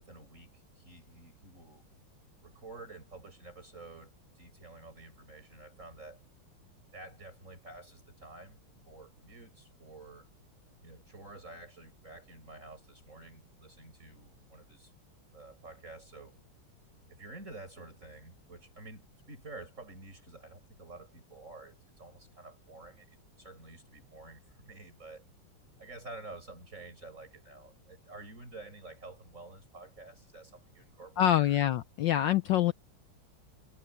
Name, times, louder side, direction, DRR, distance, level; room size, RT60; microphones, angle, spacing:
voice 1, 0.0-1.9 2.4-6.2 6.9-10.3 10.8-14.9 15.3-16.4 17.1-25.3 25.8-31.6, right 2 dB, 35° right, 7.8 m, -50 dB
voice 2, 31.2-32.7, left 12 dB, 70° left, 1.3 m, -25 dB
omnidirectional pair, 2.3 m